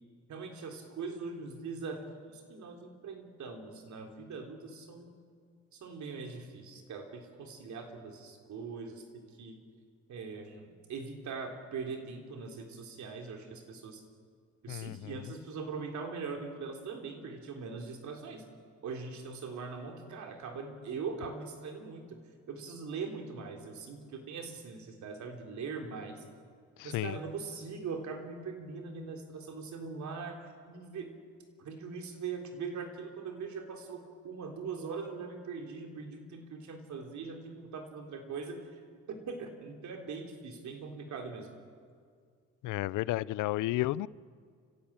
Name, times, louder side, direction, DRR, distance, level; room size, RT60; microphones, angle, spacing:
voice 1, 0.3-5.1 5.7-9.6 10.1-14.0 14.6-18.5 18.8-22.2 22.5-26.2 26.8-31.1 31.6-38.8 39.1-41.5, right 5 dB, 70° right, 3 dB, 3.6 m, -41 dB
voice 2, 14.7-15.1 26.8-27.2 42.6-44.1, left 16 dB, 85° left, 21 dB, 0.5 m, -32 dB
28.0 x 16.0 x 8.9 m, 2.1 s
cardioid pair, 90°, 30 cm